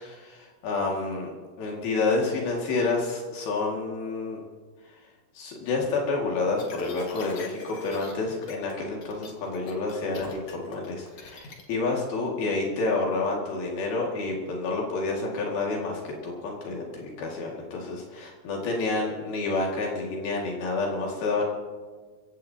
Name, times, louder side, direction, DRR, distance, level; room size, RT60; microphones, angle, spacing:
voice 1, 0.0-4.4 5.4-21.4, left 3 dB, 70° left, -1 dB, 3.9 m, -29 dB
sound 1, 6.6-8.1 8.4-8.8 9.0-11.6, left 4 dB, 50° left, 2.3 m, -41 dB
25.5 x 15.5 x 2.8 m, 1.4 s
omnidirectional pair, 4.6 m